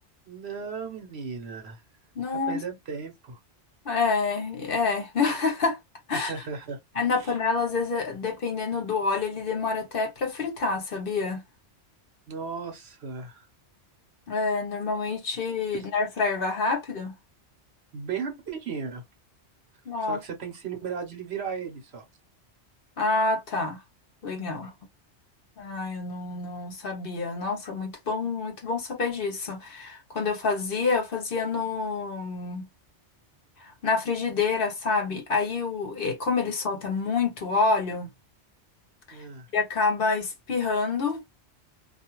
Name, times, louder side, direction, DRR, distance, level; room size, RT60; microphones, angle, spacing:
voice 1, 0.3-1.8 2.5-3.4 6.3-6.8 7.2-7.3 12.3-13.5 17.9-19.0 20.0-22.0 39.1-39.5, right 6 dB, 65° right, 1.1 m, -35 dB
voice 2, 2.2-2.6 3.8-5.8 6.1-6.3 6.9-11.4 14.3-17.1 19.9-20.2 23.0-23.8 24.2-24.7 25.6-32.6 33.6-38.1 39.1-39.2 39.5-41.5, left 4 dB, 55° left, 0.9 m, -27 dB
2.4 x 2.3 x 2.9 m
omnidirectional pair, 1.2 m